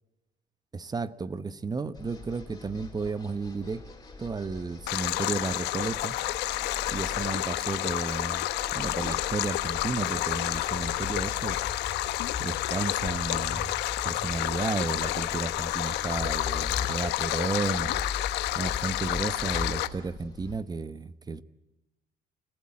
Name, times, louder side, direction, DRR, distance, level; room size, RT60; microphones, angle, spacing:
voice 1, 0.7-3.9 4.2-6.2 6.9-8.5 8.7-11.6 12.4-13.7 14.0-17.9 18.5-21.4, right 4 dB, 25° right, 15 dB, 1.0 m, -33 dB
sound 1, 1.9-20.6, left 5 dB, 20° left, 4.7 m, -40 dB
Stream, 4.9-19.9, left 16 dB, 85° left, 1.1 m, -30 dB
29.0 x 15.0 x 8.7 m, 1.0 s
cardioid pair, 110°, 17 cm